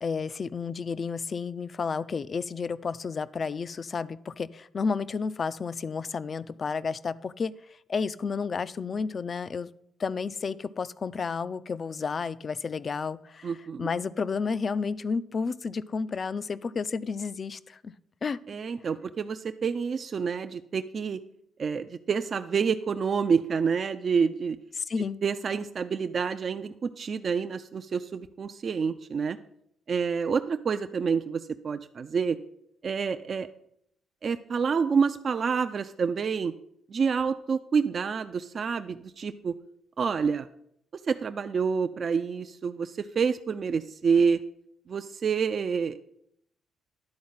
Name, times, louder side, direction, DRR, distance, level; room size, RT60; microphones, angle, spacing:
voice 1, 0.0-7.5 7.9-9.7 10.0-13.5 13.8-17.9 18.2-18.4 24.8-25.2, left 5 dB, 40° left, 17 dB, 0.3 m, -31 dB
voice 2, 13.4-13.9 18.5-21.2 21.6-24.6 25.2-29.4 29.9-32.4 32.8-33.5 34.2-36.6 36.9-39.5 40.0-40.5 41.1-44.4 44.9-46.0, right 6 dB, 45° right, 9 dB, 0.3 m, -28 dB
10.5 x 4.3 x 5.6 m, 0.73 s
cardioid pair, 90°, 0 cm